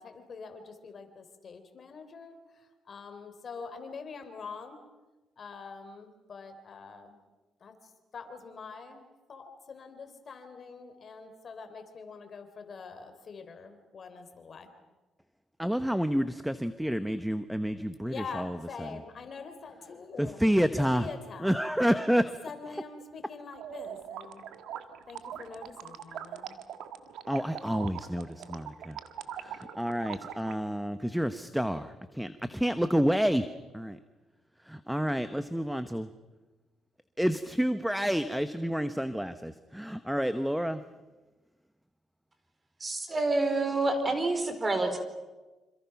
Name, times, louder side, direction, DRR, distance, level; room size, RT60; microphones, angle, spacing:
voice 1, 0.0-4.8 5.4-7.2 7.6-14.7 18.0-20.4 20.8-21.6 22.4-24.5 25.1-26.7, left 5 dB, 45° left, 8 dB, 3.8 m, -44 dB
voice 2, 15.6-18.9 20.2-21.1 21.4-22.4 27.3-29.0 29.4-33.5 33.7-34.0 34.6-36.1 37.2-40.8, equal, 5° right, 10 dB, 1.0 m, -29 dB
sound 1, 23.5-30.5, right 10 dB, 85° right, 1.6 m, -42 dB
voice 3, 42.8-45.0, right 2 dB, 30° right, 7 dB, 4.2 m, -28 dB
27.0 x 27.0 x 6.0 m, 1.2 s
cardioid pair, 90°, 0 cm